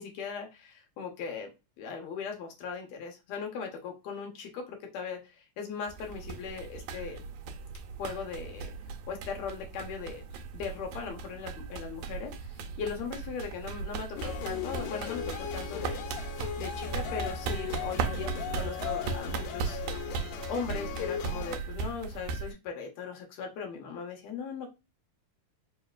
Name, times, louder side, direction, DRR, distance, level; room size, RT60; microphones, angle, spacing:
voice 1, 0.0-1.5 1.8-7.2 8.0-8.7 9.1-16.0 16.6-20.1 20.5-24.7, left 5 dB, 65° left, 1 dB, 2.0 m, -39 dB
sound 1, 5.9-22.5, right 5 dB, 75° right, 1.9 m, -38 dB
sound 2, 14.2-21.6, left 8 dB, 85° left, 2.3 m, -37 dB
4.9 x 2.8 x 2.3 m, 0.26 s
omnidirectional pair, 3.8 m